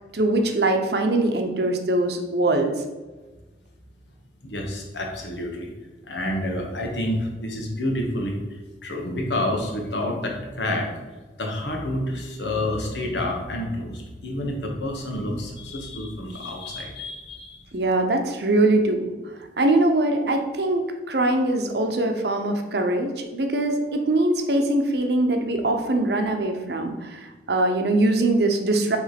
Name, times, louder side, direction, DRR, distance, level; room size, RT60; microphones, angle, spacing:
voice 1, 0.1-2.8 17.7-19.1 19.6-29.0, right 2 dB, 65° right, 5 dB, 0.8 m, -22 dB
voice 2, 4.4-5.7 6.0-8.4 8.8-10.9 11.4-17.6, left 1 dB, 80° left, 1 dB, 1.3 m, -28 dB
6.0 x 3.3 x 5.9 m, 1.2 s
head